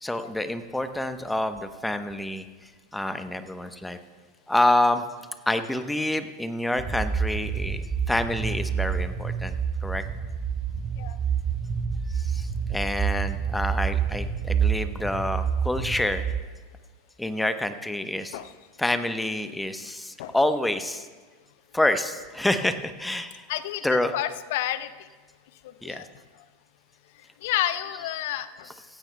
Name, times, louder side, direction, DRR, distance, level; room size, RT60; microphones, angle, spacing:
voice 1, 0.0-2.4 2.9-4.0 4.5-5.0 5.5-9.6 9.8-10.0 12.1-16.2 17.2-18.4 18.8-21.1 21.7-23.4 23.8-24.1 25.8-26.0, left 1 dB, 5° left, 9 dB, 0.9 m, -27 dB
sound 1, 6.8-16.4, right 7 dB, 30° right, 0.7 m, -28 dB
voice 2, 23.5-25.1 25.6-26.1 27.4-28.7, left 13 dB, 60° left, 13 dB, 0.6 m, -30 dB
16.0 x 16.0 x 2.2 m, 1.3 s
figure-of-eight pair, 85°, 0 cm